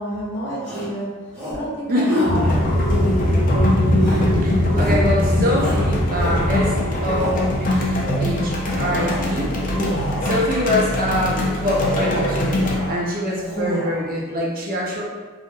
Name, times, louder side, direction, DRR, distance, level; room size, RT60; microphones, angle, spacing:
voice 1, 0.0-2.6, equal, 60° left, -6 dB, 0.9 m, -29 dB
Shout, 0.6-1.0 1.3-1.7 2.0-2.4 2.8-3.5 4.0-4.4 4.7-5.1 5.5-6.6 7.0-7.4 7.8-8.3 8.7-9.3 9.6-10.3 10.8-11.2 11.6-12.2 12.5-13.0 13.3-14.1, equal, 5° left, 0.8 m, -31 dB
voice 2, 1.9-2.3 4.1-6.8 7.0-9.5 10.3-12.6 12.9-15.0, left 1 dB, 45° right, -3 dB, 0.5 m, -24 dB
sound 1, 2.2-10.2, left 1 dB, 80° right, 0.9 m, -22 dB
sound 2, 2.3-12.8, left 1 dB, 40° left, 0.4 m, -24 dB
2.6 x 2.1 x 2.6 m, 1.4 s
head